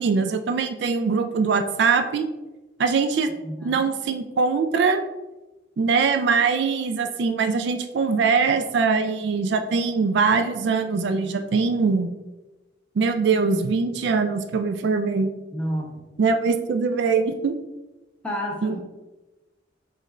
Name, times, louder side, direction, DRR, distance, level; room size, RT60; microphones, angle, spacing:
voice 1, 0.0-2.3 2.8-3.3 3.6-5.0 5.8-12.1 13.0-15.3 16.2-17.5 18.6-18.8, right 5 dB, 60° right, 7 dB, 0.3 m, -22 dB
voice 2, 3.3-3.8 15.5-15.9 18.2-18.8, equal, 5° left, -2 dB, 0.9 m, -30 dB
5.1 x 2.5 x 4.1 m, 1.1 s
head